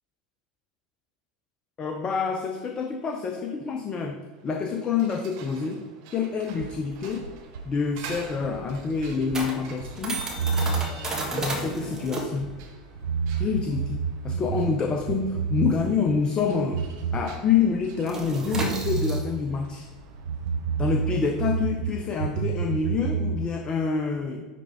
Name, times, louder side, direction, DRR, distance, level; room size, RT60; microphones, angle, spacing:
voice 1, 1.8-5.8 6.1-7.3 7.6-10.2 11.3-12.5 13.4-16.8 17.1-19.9 20.8-24.4, left 5 dB, 25° left, 5 dB, 0.5 m, -27 dB
sound 1, 4.3-21.7, right 6 dB, 50° right, 1.0 m, -49 dB
sound 2, 6.5-12.7 13.0-16.1 16.3-18.2 18.5-21.9 22.2-23.4, right 6 dB, 75° right, 0.4 m, -30 dB
sound 3, 7.8-16.8 17.0-17.3 17.6-23.3, right 2 dB, 15° right, 1.5 m, -35 dB
9.9 x 3.3 x 3.4 m, 1.4 s
figure-of-eight pair, 80°, 4 cm